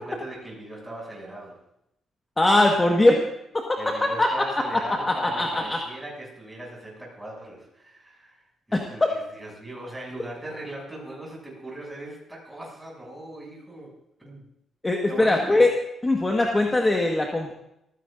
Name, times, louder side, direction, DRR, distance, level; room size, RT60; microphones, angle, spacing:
voice 1, 0.0-1.6 3.8-13.9 14.2-14.4 15.1-15.7, right 1 dB, 5° right, -3 dB, 7.1 m, -39 dB
voice 2, 2.4-3.2 3.7-3.8 4.2-4.3 5.1-5.8 8.7-8.8 14.8-15.7 16.0-17.5, left 2 dB, 15° left, 0 dB, 1.5 m, -20 dB
25.5 x 15.5 x 2.6 m, 0.82 s
cardioid pair, 130°, 0 cm